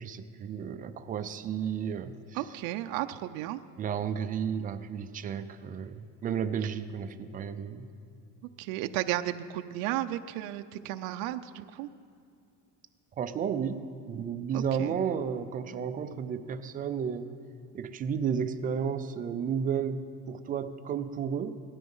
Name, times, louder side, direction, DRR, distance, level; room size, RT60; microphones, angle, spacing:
voice 1, 0.0-2.6 3.8-7.9 13.2-17.3 17.7-21.5, right 7 dB, 25° right, 9 dB, 0.4 m, -33 dB
voice 2, 2.4-3.6 8.6-11.9 14.5-14.9, right 14 dB, 85° right, 9 dB, 0.6 m, -34 dB
18.0 x 13.0 x 5.5 m, 2.4 s
cardioid pair, 175°, 33 cm